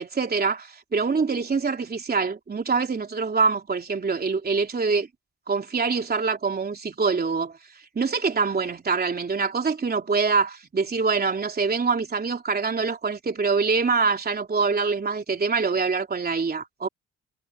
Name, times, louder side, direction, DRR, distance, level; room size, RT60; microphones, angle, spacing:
voice 1, 0.0-5.1 5.5-7.6 7.9-16.9, right 4 dB, 30° right, 3.4 m, -25 dB
cardioid pair, 90°, 30 cm